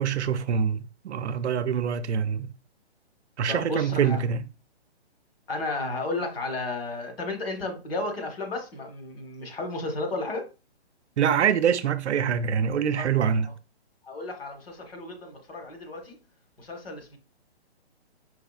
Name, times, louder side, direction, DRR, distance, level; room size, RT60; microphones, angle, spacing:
voice 1, 0.0-2.5 3.4-4.5 11.2-13.5, right 7 dB, 85° right, 0.5 m, -25 dB
voice 2, 3.5-4.2 5.5-10.5 14.0-16.2 16.6-17.2, left 2 dB, 60° left, 1.3 m, -33 dB
4.8 x 3.4 x 2.3 m
hypercardioid pair, 180°, 33 cm